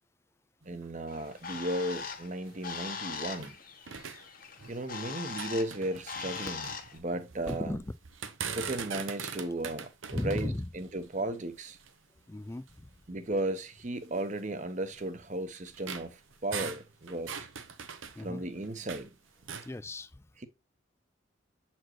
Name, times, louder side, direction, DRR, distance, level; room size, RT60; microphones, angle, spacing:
sound 1, 0.6-3.6 3.9-4.9 5.2-7.6 8.0-12.1 12.7-12.8 13.3-13.4 14.2-19.1 19.4-19.7, right 6 dB, 90° right, 1.0 m, -42 dB
voice 1, 0.7-3.6 4.7-6.7 6.9-7.8 8.5-11.8 13.1-17.5 18.2-19.1, right 1 dB, 40° right, 0.8 m, -35 dB
Bird, 1.1-7.0, left 5 dB, 45° left, 0.9 m, -41 dB
voice 2, 7.5-7.8 10.1-10.7 12.3-12.9 18.2-18.4 19.6-20.2, left 1 dB, 15° left, 0.3 m, -36 dB
7.6 x 4.4 x 3.0 m
head